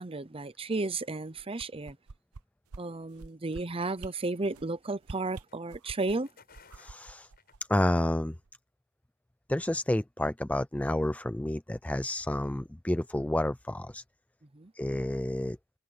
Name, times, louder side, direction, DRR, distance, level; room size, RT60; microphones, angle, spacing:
voice 1, 0.0-2.0 2.8-6.3 14.5-14.7, right 3 dB, 25° right, 0.8 m, -33 dB
sound 1, 1.3-2.4 2.7-2.8 3.1-3.6 4.0-4.1 4.5-4.7 5.0-6.1 6.5-8.1 8.5-8.6, right 3 dB, 90° right, 0.8 m, -46 dB
Footsteps Gravel Running-Stop, 4.1-8.2, left 5 dB, 45° left, 6.9 m, -61 dB
voice 2, 6.8-7.3 7.7-8.4 9.5-14.0 14.8-15.6, left 1 dB, 5° left, 0.4 m, -30 dB
head